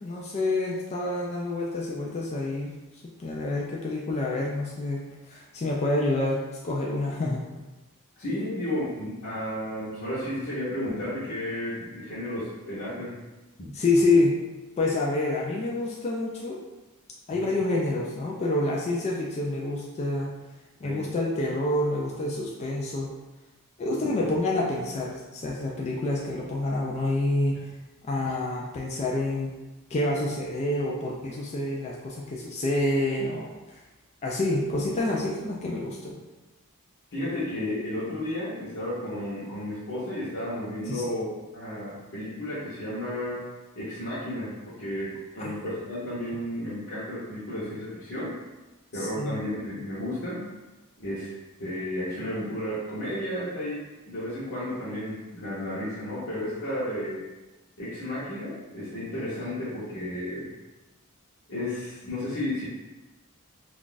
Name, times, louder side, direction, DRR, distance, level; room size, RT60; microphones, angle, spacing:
voice 1, 0.0-2.7 3.2-5.0 5.3-6.4 6.6-7.4 13.7-14.3 14.8-16.6 17.3-20.3 20.8-23.1 23.8-27.6 28.0-29.5 29.9-33.8 34.2-36.2 40.9-41.0 48.9-49.4, left 2 dB, 30° left, -3 dB, 0.3 m, -27 dB
voice 2, 8.2-13.2 13.6-13.7 17.3-17.5 20.8-21.0 23.8-24.0 27.5-27.6 28.1-28.2 37.1-43.4 43.7-48.4 48.9-50.4 51.0-51.3 51.6-57.2 57.8-60.5 61.5-62.7, left 1 dB, 55° left, -11 dB, 0.8 m, -33 dB
2.5 x 2.3 x 3.8 m, 1.1 s
head